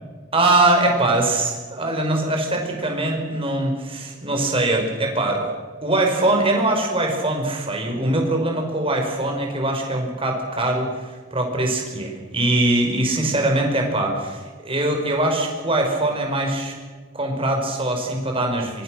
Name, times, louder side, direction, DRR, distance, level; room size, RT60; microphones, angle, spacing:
voice 1, 0.3-5.5 5.8-10.9 11.3-16.7 17.1-18.8, right 2 dB, 25° right, 2 dB, 5.5 m, -22 dB
24.5 x 24.0 x 6.6 m, 1.4 s
head